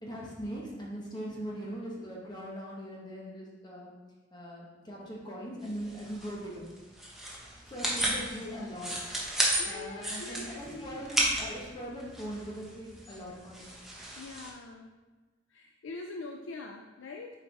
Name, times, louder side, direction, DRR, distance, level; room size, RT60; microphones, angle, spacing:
voice 1, 0.0-3.9 4.3-6.7 7.7-13.7, equal, 25° left, -4 dB, 1.2 m, -41 dB
sound 1, 5.6-14.5, right 1 dB, ahead, 1.1 m, -34 dB
voice 2, 8.4-8.8 9.3-11.0 14.2-14.9 15.5-17.3, left 3 dB, 90° left, 3 dB, 0.5 m, -44 dB
8.0 x 4.8 x 3.4 m, 1.2 s
head